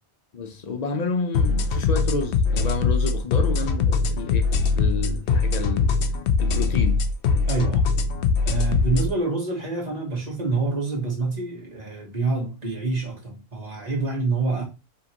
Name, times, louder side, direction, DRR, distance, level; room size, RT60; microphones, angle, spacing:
voice 1, 0.3-5.9 6.4-7.0, left 4 dB, 45° left, 0.7 m, -30 dB
sound 1, 1.3-9.1, left 4 dB, 85° left, 0.9 m, -22 dB
voice 2, 7.5-7.9 8.4-14.6, right 3 dB, 40° right, 1.4 m, -27 dB
4.9 x 2.9 x 2.9 m
omnidirectional pair, 1.1 m